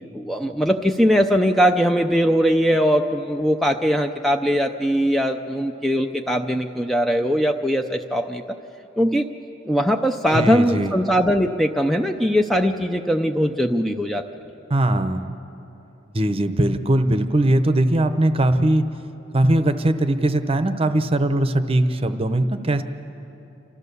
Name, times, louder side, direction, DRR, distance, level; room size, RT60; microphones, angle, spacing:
voice 1, 0.1-8.4 9.0-9.3 9.7-14.2, equal, ahead, 4 dB, 0.5 m, -20 dB
voice 2, 10.3-10.9 14.7-15.3 16.1-18.9 19.3-22.8, right 1 dB, 30° right, 9 dB, 0.8 m, -20 dB
29.5 x 13.5 x 6.8 m, 2.9 s
head